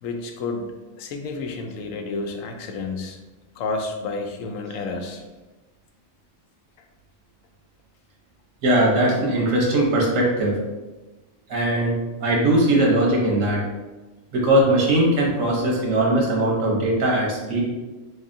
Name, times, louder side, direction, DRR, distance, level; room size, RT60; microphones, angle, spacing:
voice 1, 0.0-3.2 3.6-5.2, left 3 dB, 90° left, 4 dB, 1.0 m, -30 dB
voice 2, 8.6-10.6 11.5-13.6 14.3-17.6, right 1 dB, 85° right, -2 dB, 1.4 m, -20 dB
3.9 x 3.3 x 2.6 m, 1.2 s
omnidirectional pair, 1.3 m